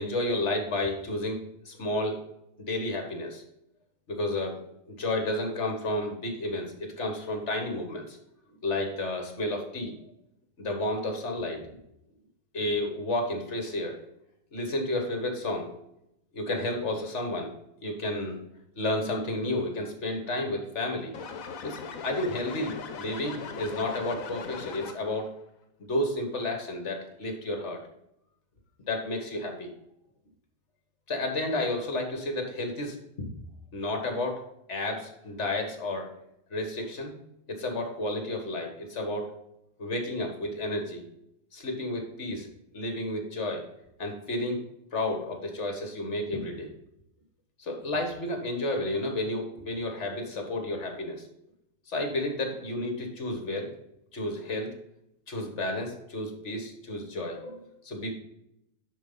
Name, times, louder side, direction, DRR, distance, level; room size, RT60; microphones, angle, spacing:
voice 1, 0.0-2.2 2.6-3.4 4.1-4.6 4.9-8.2 8.6-10.0 10.6-11.7 12.5-14.0 14.5-15.7 16.3-17.5 17.8-18.4 18.8-21.1 21.6-25.3 25.8-27.8 28.9-29.7 31.1-33.3 33.7-34.4 34.7-36.1 36.5-37.2 37.5-39.4 39.8-41.0 41.5-42.5 42.7-43.6 44.0-44.6 44.9-46.7 47.6-51.3 51.9-53.7 54.1-54.7 55.3-58.1, left 1 dB, 60° left, 4 dB, 1.9 m, -31 dB
sound 1, 21.1-25.3, left 5 dB, 85° left, 1.3 m, -39 dB
10.5 x 4.5 x 3.9 m, 0.81 s
omnidirectional pair, 1.4 m